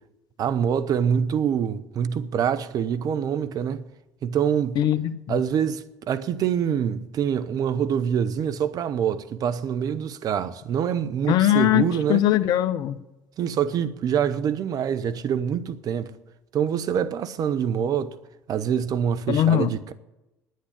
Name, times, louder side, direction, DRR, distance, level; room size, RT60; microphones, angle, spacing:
voice 1, 0.4-3.8 4.2-4.8 5.3-12.2 13.4-16.1 16.5-18.2 18.5-19.9, right 8 dB, 50° right, 0.8 m, -25 dB
voice 2, 4.8-5.4 11.3-13.0 19.3-19.7, left 12 dB, 55° left, 0.7 m, -21 dB
9.8 x 9.4 x 9.8 m
hypercardioid pair, 65°, 8 cm